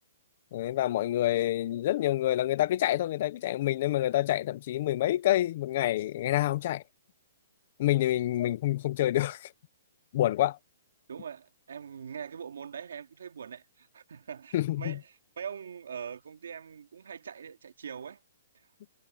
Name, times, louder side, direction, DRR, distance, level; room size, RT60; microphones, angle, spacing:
voice 1, 0.5-6.8 7.8-9.5 10.1-10.6 14.5-15.0, left 14 dB, 35° left, 0.6 m, -27 dB
voice 2, 11.1-18.2, right 7 dB, 75° right, 2.3 m, -42 dB
hypercardioid pair, 175°, 0 cm